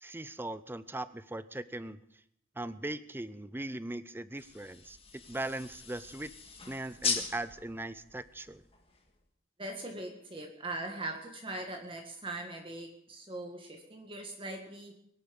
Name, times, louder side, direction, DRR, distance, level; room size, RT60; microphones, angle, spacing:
voice 1, 0.0-2.0 2.6-6.3 6.7-8.6, right 2 dB, 10° right, 15 dB, 0.6 m, -39 dB
sound 1, 4.4-9.2, left 5 dB, 30° left, 1.8 m, -39 dB
voice 2, 9.6-14.9, right 2 dB, 25° right, 2 dB, 1.9 m, -41 dB
23.0 x 11.0 x 5.3 m, 0.73 s
head